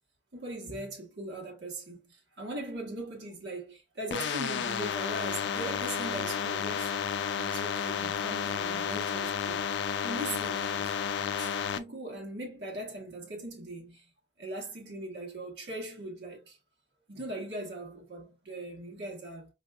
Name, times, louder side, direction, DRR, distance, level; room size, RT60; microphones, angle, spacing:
voice 1, 0.3-6.9 7.4-9.7 10.0-11.0 11.4-14.1 14.4-16.6 17.1-19.5, right 1 dB, 65° right, 1.2 m, -40 dB
sound 1, 4.1-11.8, left 7 dB, 70° left, 0.4 m, -32 dB
4.4 x 2.7 x 2.3 m
head